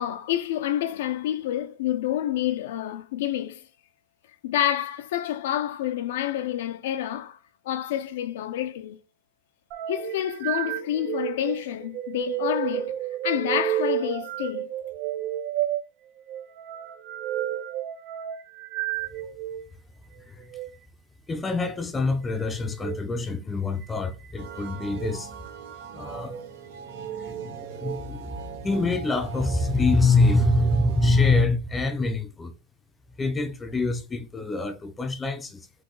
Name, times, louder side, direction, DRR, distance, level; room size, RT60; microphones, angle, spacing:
voice 1, 0.0-3.6 4.4-7.4 7.6-9.0 9.9-12.9 13.2-14.7, left 12 dB, 75° left, 0.4 m, -28 dB
sound 1, 9.7-19.6 20.4-20.7 22.7-23.0 23.8-24.3 24.9-25.2 26.0-26.5 26.9-28.0, right 11 dB, 55° right, 0.6 m, -31 dB
voice 2, 21.3-25.3 25.9-26.5 26.9-32.5 33.2-35.6, left 3 dB, 15° left, 0.5 m, -25 dB
sound 2, 24.4-31.5, right 7 dB, 75° right, 0.8 m, -41 dB
4.0 x 2.7 x 3.8 m
supercardioid pair, 115°, 0 cm